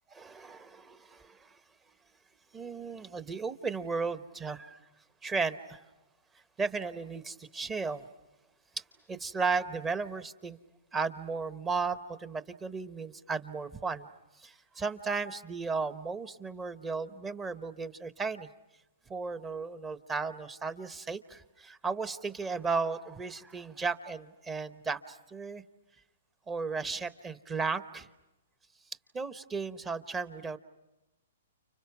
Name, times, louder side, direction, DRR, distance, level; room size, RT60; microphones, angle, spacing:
voice 1, 0.1-1.5 2.5-4.8 5.2-5.9 6.6-8.1 9.1-10.6 10.9-14.1 14.4-18.5 19.1-25.6 26.5-28.1 29.1-30.6, right 4 dB, 15° right, 12 dB, 0.9 m, -35 dB
30.0 x 30.0 x 6.0 m, 1.0 s
hypercardioid pair, 145°, 0 cm